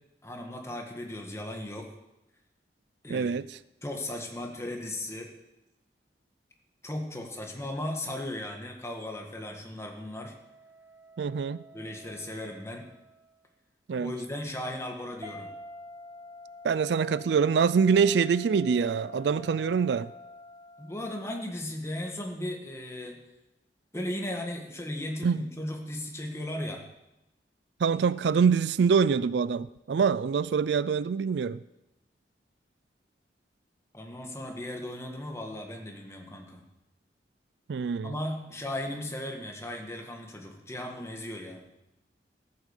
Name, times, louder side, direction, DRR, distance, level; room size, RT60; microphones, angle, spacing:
voice 1, 0.2-1.9 3.0-3.3 3.8-5.3 6.8-10.3 11.7-12.9 14.0-15.5 20.8-23.2 23.9-26.8 33.9-36.6 38.0-41.7, left 1 dB, 15° left, 1.7 m, -36 dB
voice 2, 3.1-3.5 11.2-11.6 13.9-14.1 16.6-20.1 25.2-25.4 27.8-31.6 37.7-38.1, right 6 dB, 75° right, 0.4 m, -25 dB
sound 1, 10.0-13.2 15.2-21.4, left 2 dB, 25° right, 2.6 m, -48 dB
14.5 x 8.6 x 6.6 m
head